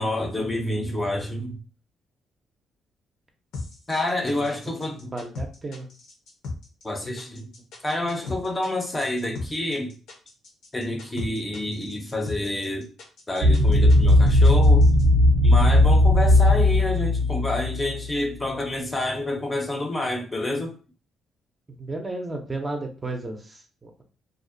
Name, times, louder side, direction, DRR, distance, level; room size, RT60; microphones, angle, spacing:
voice 1, 0.0-1.6 3.9-5.1 6.8-7.5 7.8-10.0 10.7-12.9 13.3-14.9 15.4-20.7, left 1 dB, 20° left, 0.5 m, -28 dB
sound 1, 3.5-15.0, left 3 dB, 80° left, 0.7 m, -37 dB
voice 2, 4.4-4.8 5.1-5.9 21.8-24.0, right 2 dB, 25° right, 0.5 m, -34 dB
sound 2, 13.4-18.1, left 1 dB, 85° right, 0.5 m, -17 dB
2.4 x 2.0 x 2.5 m
cardioid pair, 90°, 0 cm